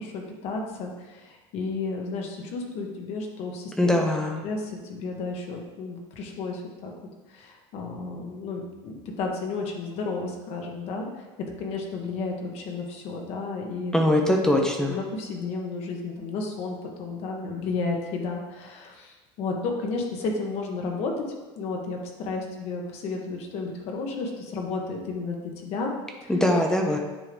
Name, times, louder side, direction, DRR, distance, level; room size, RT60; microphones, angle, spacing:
voice 1, 0.0-4.1 4.4-6.9 7.3-11.1 11.4-14.5 14.9-21.3 21.5-25.9 26.2-26.3, left 3 dB, 55° left, 1 dB, 1.4 m, -32 dB
voice 2, 3.8-4.4 13.9-15.0 26.3-27.0, left 1 dB, 5° left, 2 dB, 0.8 m, -22 dB
9.8 x 3.7 x 3.5 m, 1.2 s
supercardioid pair, 135°, 13 cm